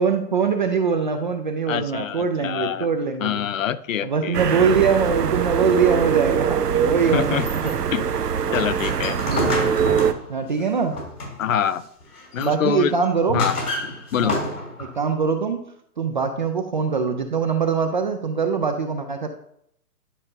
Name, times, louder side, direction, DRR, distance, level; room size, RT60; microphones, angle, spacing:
voice 1, 0.0-3.4 4.0-7.7 9.2-9.7 10.3-11.0 12.4-13.4 14.2-14.5 14.8-15.6 16.0-19.3, right 5 dB, 35° right, 0.4 m, -23 dB
voice 2, 1.7-2.9 3.2-4.4 7.1-7.5 7.9-8.1 8.5-9.2 11.4-11.8 12.3-12.9 13.3-13.6 14.1-14.4, left 9 dB, 60° left, 0.5 m, -25 dB
sound 1, 4.3-10.1, right 7 dB, 90° right, 0.6 m, -23 dB
sound 2, 7.3-11.6 12.0-12.6 13.0-15.0, left 1 dB, 75° left, 3.1 m, -30 dB
10.0 x 5.2 x 2.6 m
figure-of-eight pair, 125°, 46 cm